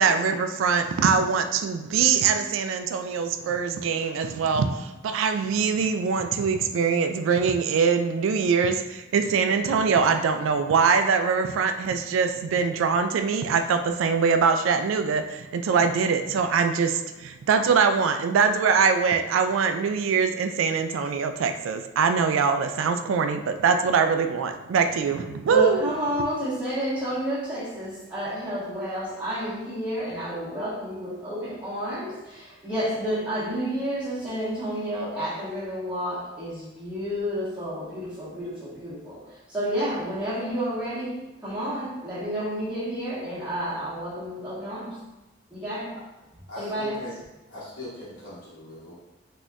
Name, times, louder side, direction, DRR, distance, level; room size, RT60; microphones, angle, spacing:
voice 1, 0.0-25.9, right 5 dB, 80° right, 8 dB, 0.3 m, -23 dB
voice 2, 25.5-45.0 45.5-45.9 46.6-47.0, equal, 5° right, -12 dB, 1.3 m, -30 dB
voice 3, 46.5-47.1 47.5-49.0, left 1 dB, 85° left, -12 dB, 1.2 m, -39 dB
4.0 x 2.9 x 2.4 m, 1.0 s
head